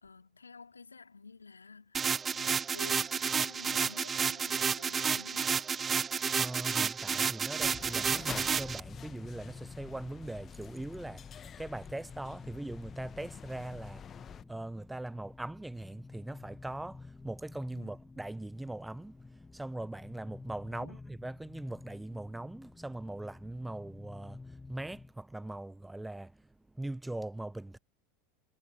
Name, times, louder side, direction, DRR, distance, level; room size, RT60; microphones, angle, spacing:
voice 1, 0.0-5.6 17.7-18.0 20.7-21.0, left 4 dB, 80° left, 2.7 m, -52 dB
sound 1, 1.9-8.8, right 6 dB, 25° right, 0.3 m, -31 dB
voice 2, 6.4-14.1 14.3-26.4 26.7-27.8, right 2 dB, 5° right, 0.9 m, -41 dB
sound 2, 7.6-14.4, left 9 dB, 30° left, 1.6 m, -48 dB
sound 3, 8.1-25.2, left 3 dB, 15° left, 1.2 m, -51 dB
figure-of-eight pair, 80°, 0 cm